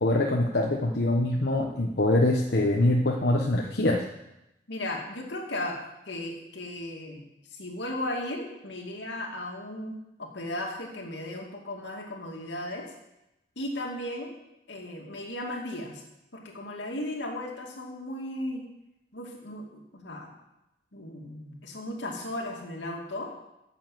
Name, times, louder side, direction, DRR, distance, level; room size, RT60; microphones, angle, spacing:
voice 1, 0.0-4.0, left 1 dB, 60° left, 0 dB, 1.0 m, -24 dB
voice 2, 4.7-5.8 6.1-7.2 7.5-12.9 13.6-14.3 14.7-16.0 16.3-18.7 19.1-20.3 20.9-23.3, left 1 dB, 80° left, 0 dB, 2.4 m, -36 dB
10.5 x 7.3 x 7.7 m, 0.91 s
head